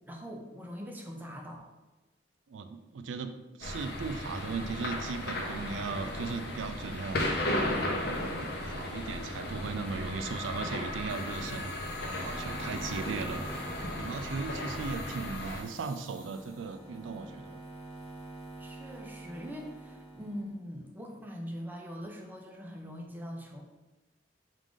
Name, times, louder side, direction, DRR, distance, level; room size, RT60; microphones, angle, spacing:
voice 1, 0.1-1.7 12.6-13.2 18.6-23.6, equal, 10° right, 1 dB, 0.5 m, -42 dB
voice 2, 2.5-3.3 3.6-7.3 7.8-11.7 12.0-13.5 14.0-17.6, right 4 dB, 85° right, 8 dB, 0.4 m, -37 dB
sound 1, 3.6-15.6, left 1 dB, 60° left, 0.6 m, -35 dB
sound 2, 11.1-16.8, equal, 10° left, 1.0 m, -54 dB
sound 3, 12.2-20.5, right 2 dB, 35° left, 1.2 m, -47 dB
4.8 x 2.4 x 3.6 m, 1.1 s
head